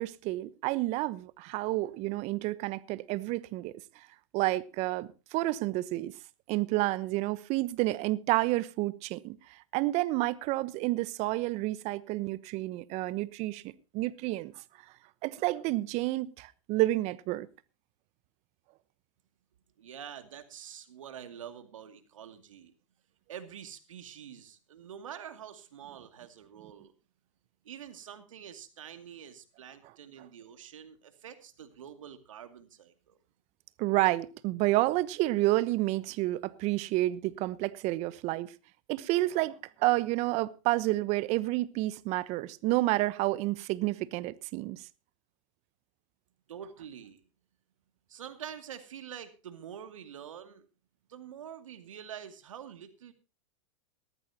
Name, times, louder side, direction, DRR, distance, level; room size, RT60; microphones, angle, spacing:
voice 1, 0.0-4.1 4.3-6.1 6.5-14.5 15.2-17.5 33.8-38.5 38.9-44.9, right 18 dB, 45° right, 1.0 m, -30 dB
voice 2, 19.8-22.7 23.3-26.9 27.6-33.2 46.5-47.2 48.1-50.7 51.1-53.1, right 9 dB, 80° right, 2.4 m, -46 dB
19.0 x 13.5 x 2.9 m
hypercardioid pair, 115°, 16 cm